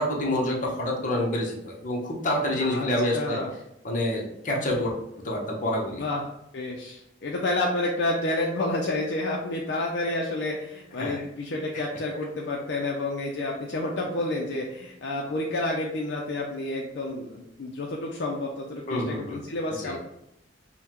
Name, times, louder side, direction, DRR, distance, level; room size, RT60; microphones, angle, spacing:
voice 1, 0.0-3.4 3.8-4.9 5.2-6.0 11.0-11.2 11.7-11.8 18.9-19.4 19.8-20.0, left 1 dB, 45° left, -2 dB, 0.9 m, -27 dB
voice 2, 2.6-3.5 5.9-6.2 6.5-20.0, left 2 dB, 65° left, -1 dB, 0.5 m, -30 dB
5.5 x 2.2 x 3.0 m, 0.81 s
head